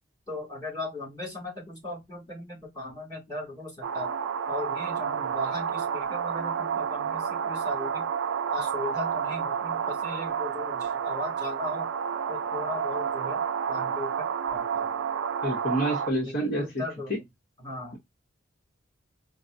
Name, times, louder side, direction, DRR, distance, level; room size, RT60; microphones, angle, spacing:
voice 1, 0.3-4.1 4.5-8.1 8.5-11.9 12.3-13.4 13.7-14.9 16.2-17.2 17.6-18.0, left 2 dB, 25° left, 2.5 m, -37 dB
sound 1, 3.8-16.1, right 7 dB, 70° right, 0.4 m, -30 dB
voice 2, 15.4-16.8, right 1 dB, 50° left, 0.9 m, -28 dB
4.6 x 2.0 x 2.5 m
head